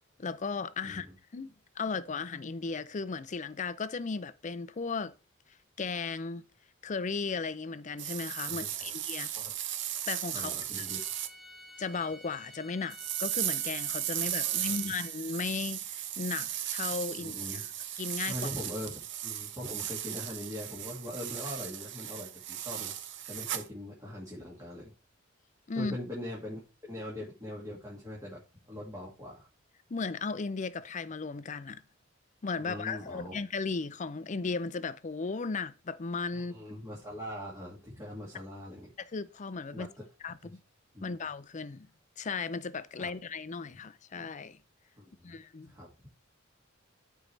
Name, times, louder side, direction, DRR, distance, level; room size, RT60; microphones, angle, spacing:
voice 1, 0.2-1.1 1.3-5.1 5.8-6.4 6.8-9.3 10.1-10.8 11.8-17.7 18.0-18.4 25.7-26.0 29.9-31.8 32.4-36.5 39.0-39.9 40.2-40.6 41.0-41.9 42.2-44.6 45.2-45.7, left 4 dB, 40° left, 0.5 m, -36 dB
voice 2, 0.8-1.1 8.5-8.9 9.4-9.5 10.3-11.0 14.1-14.9 17.2-17.7 18.3-22.9 23.3-24.9 25.8-28.4 28.7-29.5 32.5-33.3 36.3-38.9 39.7-40.0 40.4-40.6 40.9-41.2 43.0-43.1 45.0-45.4 45.6-45.9, left 1 dB, 15° right, 2.1 m, -42 dB
sound 1, 8.0-11.3 12.9-23.7, right 11 dB, 65° right, 0.7 m, -36 dB
Bowed string instrument, 10.7-15.2, equal, ahead, 1.3 m, -53 dB
13.0 x 4.7 x 3.3 m
head